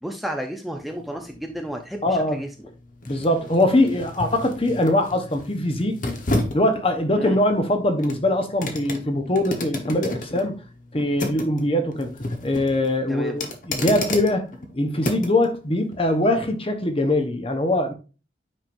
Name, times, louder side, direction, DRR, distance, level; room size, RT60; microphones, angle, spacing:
voice 1, 0.0-2.5 7.2-7.4 13.1-13.4, equal, ahead, 0.6 m, -32 dB
sound 1, 0.8-15.5 15.9-16.1, left 2 dB, 45° left, 1.1 m, -32 dB
voice 2, 2.0-2.4 3.1-6.0 6.5-10.6 10.9-14.5 14.7-17.9, left 1 dB, 30° left, 1.0 m, -22 dB
8.8 x 5.1 x 2.6 m
head